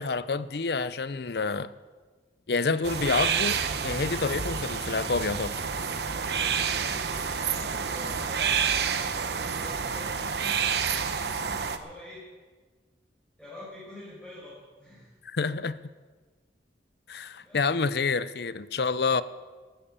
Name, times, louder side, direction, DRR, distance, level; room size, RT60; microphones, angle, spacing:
voice 1, 0.0-1.7 2.5-5.5 15.3-15.8 17.1-19.2, left 4 dB, 65° left, 0.6 m, -28 dB
sound 1, 2.8-11.8, right 6 dB, 70° right, 1.0 m, -29 dB
voice 2, 7.0-12.2 13.4-15.2 17.4-17.6, left 1 dB, 5° left, 5.1 m, -47 dB
14.0 x 13.0 x 7.0 m
head